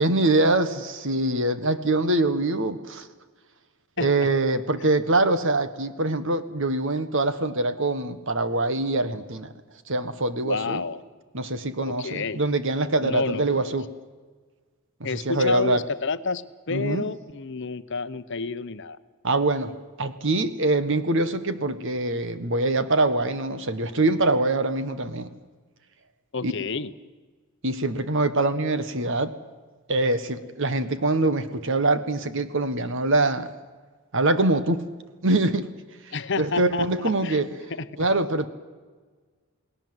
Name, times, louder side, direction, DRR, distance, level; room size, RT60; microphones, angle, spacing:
voice 1, 0.0-3.1 4.0-9.5 9.9-10.8 11.3-13.9 15.0-15.8 16.7-17.1 19.2-25.3 26.4-26.5 27.6-29.3 29.9-33.5 34.1-34.8 35.2-35.7 36.4-37.5 38.0-38.5, right 2 dB, 55° right, 11 dB, 1.5 m, -24 dB
voice 2, 4.0-4.3 10.4-11.0 11.9-12.4 13.0-13.8 15.0-19.0 26.3-26.9 36.1-36.9 37.2-37.4 37.7-37.9, left 4 dB, 55° left, 12 dB, 0.8 m, -30 dB
29.0 x 19.5 x 7.9 m, 1.4 s
head